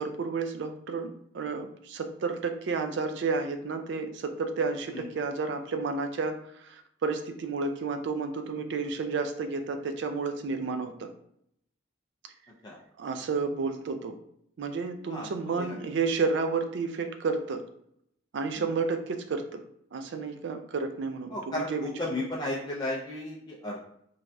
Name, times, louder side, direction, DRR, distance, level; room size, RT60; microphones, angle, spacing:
voice 1, 0.0-11.1 13.0-14.2 14.6-17.6 18.3-19.6 19.9-21.9, right 4 dB, 60° right, 8 dB, 0.3 m, -31 dB
voice 2, 21.3-23.8, left 1 dB, 20° left, -4 dB, 0.4 m, -34 dB
3.2 x 2.3 x 2.6 m, 0.71 s
head